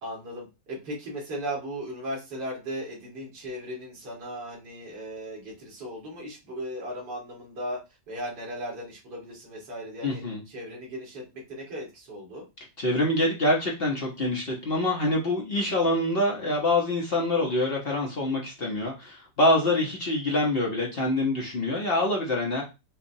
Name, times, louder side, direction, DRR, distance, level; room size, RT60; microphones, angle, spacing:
voice 1, 0.0-7.8 8.1-10.2 10.5-12.4, equal, 75° right, -3 dB, 2.2 m, -37 dB
voice 2, 10.0-10.4 12.8-22.6, left 1 dB, 40° left, -1 dB, 0.9 m, -25 dB
6.9 x 2.4 x 2.7 m, 0.27 s
omnidirectional pair, 1.8 m